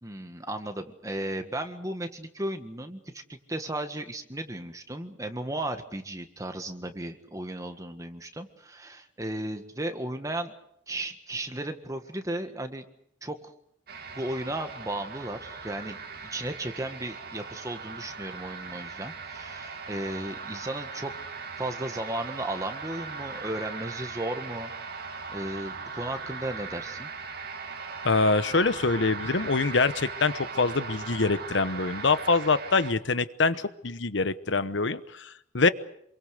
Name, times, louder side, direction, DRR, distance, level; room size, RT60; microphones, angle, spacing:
voice 1, 0.0-10.5 10.9-12.8 13.2-13.5 14.1-21.1 21.6-24.7 25.3-27.1, right 1 dB, 15° right, 7 dB, 1.7 m, -35 dB
sound 1, 13.9-32.9, right 5 dB, 55° right, 2.7 m, -39 dB
voice 2, 28.0-35.7, left 3 dB, 75° left, 13 dB, 1.0 m, -25 dB
27.5 x 23.0 x 6.6 m, 0.71 s
head